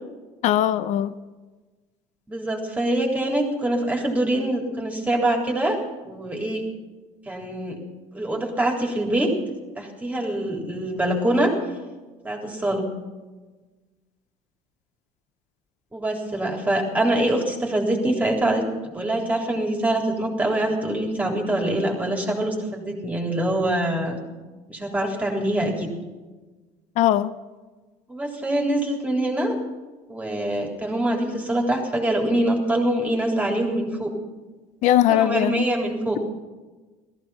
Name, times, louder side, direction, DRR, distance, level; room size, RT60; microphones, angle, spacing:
voice 1, 0.4-1.1 27.0-27.3 34.8-35.6, left 12 dB, 65° left, 15 dB, 0.7 m, -20 dB
voice 2, 2.3-5.8 6.0-6.6 7.3-7.8 8.1-9.3 9.8-11.5 12.2-12.9 15.9-24.2 24.7-25.9 28.1-29.6 30.1-34.1 35.1-36.2, right 1 dB, 10° right, 1 dB, 3.6 m, -24 dB
17.0 x 15.0 x 5.6 m, 1.2 s
cardioid pair, 125°, 13 cm